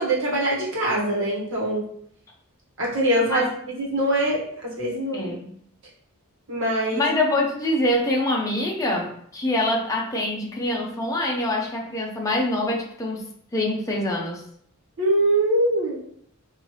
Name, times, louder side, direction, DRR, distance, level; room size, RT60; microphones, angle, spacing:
voice 1, 0.0-1.8 2.8-5.2 6.5-7.0 15.0-16.0, right 1 dB, 60° right, -4 dB, 1.4 m, -23 dB
voice 2, 5.1-5.5 6.9-13.3 13.5-14.4, left 1 dB, 15° left, -2 dB, 0.7 m, -25 dB
4.4 x 2.7 x 3.2 m, 0.65 s
head